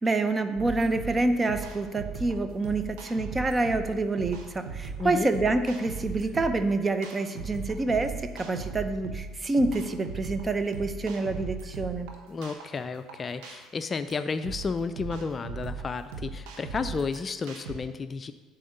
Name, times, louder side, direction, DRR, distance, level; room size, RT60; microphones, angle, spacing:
voice 1, 0.0-12.1, right 2 dB, 25° right, 9 dB, 0.7 m, -27 dB
sound 1, 0.6-17.8, right 5 dB, 80° right, 1.2 m, -39 dB
voice 2, 5.0-5.3 12.3-18.3, left 4 dB, 35° left, 11 dB, 0.4 m, -32 dB
7.7 x 4.3 x 6.5 m, 1.3 s
supercardioid pair, 85°, 0 cm